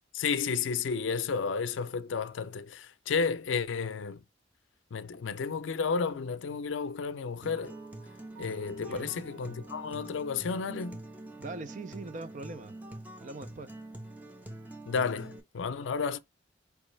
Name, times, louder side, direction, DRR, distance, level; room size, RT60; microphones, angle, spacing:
voice 1, 0.1-4.2 4.9-7.7 8.4-11.0 14.9-16.2, left 5 dB, 90° left, 0.5 m, -32 dB
Acoustic guitar, 7.4-15.4, right 1 dB, 10° right, 0.7 m, -45 dB
sound 1, 7.6-12.0, right 4 dB, 80° right, 1.7 m, -57 dB
voice 2, 8.8-9.2 11.4-12.8 13.2-13.8, right 3 dB, 40° right, 0.4 m, -42 dB
4.7 x 3.0 x 3.2 m
head